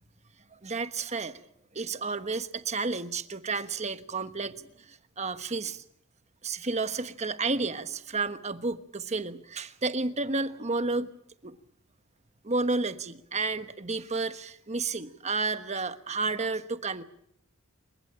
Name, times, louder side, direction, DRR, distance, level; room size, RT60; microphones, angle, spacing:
voice 1, 0.5-1.4 1.7-5.8 6.4-11.1 11.4-11.6 12.4-17.0, right 3 dB, 30° right, 10 dB, 1.2 m, -31 dB
28.5 x 15.5 x 9.0 m, 0.73 s
head